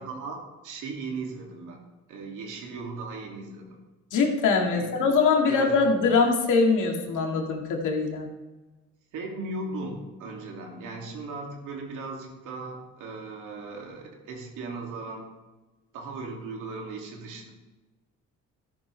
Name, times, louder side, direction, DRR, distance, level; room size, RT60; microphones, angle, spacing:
voice 1, 0.0-1.8 2.1-3.8 4.7-5.0 5.5-5.9 9.1-15.3 15.9-17.5, right 3 dB, 85° right, 0 dB, 2.7 m, -37 dB
voice 2, 4.1-8.3, left 4 dB, 80° left, 1 dB, 2.3 m, -23 dB
13.0 x 11.5 x 3.4 m, 1.1 s
cardioid pair, 90°, 30 cm